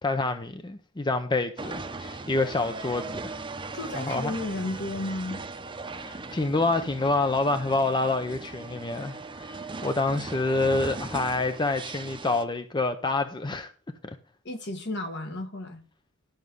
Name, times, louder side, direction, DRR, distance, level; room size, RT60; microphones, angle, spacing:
voice 1, 0.0-3.3 3.9-4.3 5.9-13.7, left 2 dB, 20° left, 0.6 m, -27 dB
sound 1, 1.6-12.4, right 3 dB, 25° right, 0.8 m, -39 dB
voice 2, 3.7-5.4 14.4-15.8, left 2 dB, 60° left, 1.8 m, -33 dB
11.5 x 6.2 x 5.3 m
head